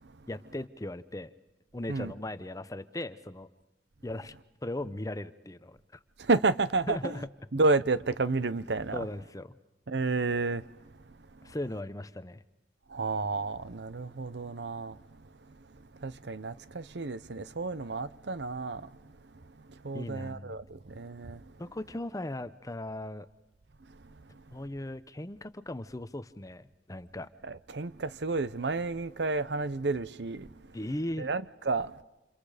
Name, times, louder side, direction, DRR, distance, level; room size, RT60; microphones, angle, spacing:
voice 1, 0.3-1.3 1.7-3.5 4.0-4.3 4.6-6.0 6.9-7.3 8.9-9.5 11.4-12.4 19.9-20.6 21.6-23.3 24.5-27.3 30.7-31.3, left 1 dB, 20° left, 0.8 m, -38 dB
voice 2, 6.2-7.1 7.5-9.0 9.9-10.6 12.9-15.0 16.0-18.9 19.8-21.4 27.5-30.5 31.2-31.9, right 3 dB, 70° right, 0.8 m, -30 dB
29.5 x 28.5 x 5.0 m
head